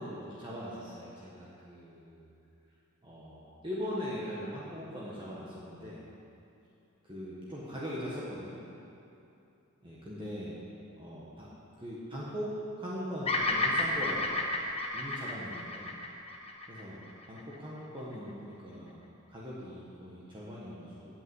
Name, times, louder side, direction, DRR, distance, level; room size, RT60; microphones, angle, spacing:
voice 1, 0.0-2.3 3.0-6.0 7.0-8.6 9.8-10.6 11.0-11.5 11.8-14.4 14.9-15.9 16.7-17.0 17.3-19.0 19.3-21.2, equal, 20° right, -7 dB, 1.3 m, -40 dB
Bird vocalization bird call bird song, 13.2-17.5, left 2 dB, 30° left, 0.8 m, -32 dB
8.6 x 8.3 x 8.0 m, 2.8 s
head